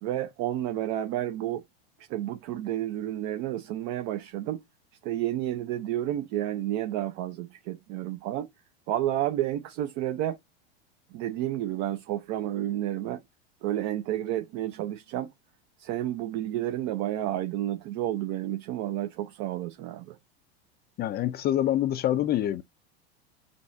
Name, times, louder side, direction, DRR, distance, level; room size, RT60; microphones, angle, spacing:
voice 1, 0.0-1.6 2.1-4.6 5.0-8.5 8.9-10.4 11.1-13.2 13.6-15.3 15.8-20.2, right 12 dB, 50° right, 0.8 m, -31 dB
voice 2, 21.0-22.6, left 12 dB, 30° left, 0.4 m, -26 dB
5.4 x 3.0 x 2.6 m
hypercardioid pair, 105°, 33 cm